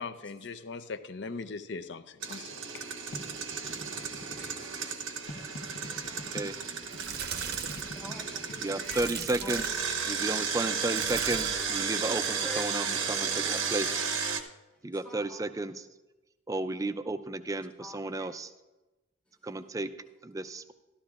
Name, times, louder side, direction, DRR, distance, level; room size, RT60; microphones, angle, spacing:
voice 1, 0.0-2.8, left 4 dB, 60° left, 0.6 m, -40 dB
Engine, 2.2-9.1 9.5-14.4, right 6 dB, 85° right, 0.9 m, -33 dB
sound 1, 3.1-4.7 5.3-7.0 7.7-8.8, left 1 dB, 85° left, 1.2 m, -44 dB
voice 2, 4.0-5.0 5.6-6.4 7.1-7.2 7.9-9.6 10.0-10.2 12.4-13.4 15.0-15.4 17.8-18.3, equal, 5° left, 0.9 m, -47 dB
voice 3, 6.1-6.5 8.6-9.8 10.1-14.1 14.8-15.9 16.5-18.5 19.4-19.9 20.2-20.7, right 2 dB, 15° right, 0.3 m, -33 dB
sound 2, 6.8-8.0 8.8-9.9 10.9-11.7 12.1-12.5 14.0-14.1, right 7 dB, 50° right, 0.7 m, -38 dB
13.0 x 13.0 x 2.4 m
head